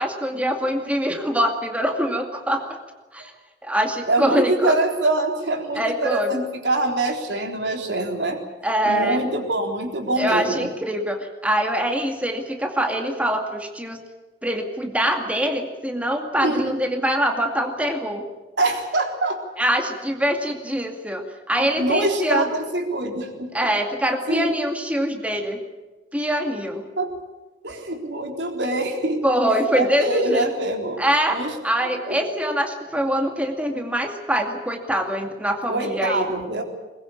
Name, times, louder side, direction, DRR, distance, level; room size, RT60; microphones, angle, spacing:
voice 1, 0.0-2.8 3.1-3.3 3.6-4.8 5.8-6.4 8.6-9.3 10.2-14.0 14.4-18.3 19.6-22.5 23.5-25.6 26.1-26.8 29.2-30.5 31.0-31.4 31.6-36.3, equal, 10° right, 3 dB, 2.3 m, -24 dB
voice 2, 4.1-8.4 8.8-10.7 16.4-16.8 18.6-19.4 21.8-23.7 24.3-24.6 27.0-27.1 27.6-29.4 29.7-31.0 31.3-31.5 31.9-32.2 35.7-36.6, right 2 dB, 90° right, 3 dB, 3.9 m, -24 dB
21.5 x 21.0 x 8.6 m, 1.2 s
head